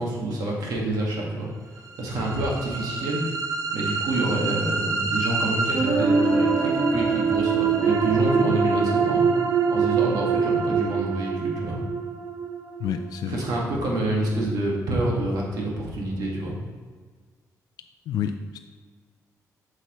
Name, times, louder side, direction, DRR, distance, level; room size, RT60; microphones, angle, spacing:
voice 1, 0.0-3.2 3.7-11.8 13.3-16.6, right 1 dB, 75° right, -3 dB, 1.6 m, -27 dB
sound 1, 1.9-13.9, right 5 dB, 55° right, 0.9 m, -24 dB
voice 2, 12.8-13.4 18.1-18.6, left 8 dB, 80° left, 7 dB, 0.3 m, -29 dB
7.9 x 5.8 x 3.0 m, 1.5 s
wide cardioid pair, 160°, 7 cm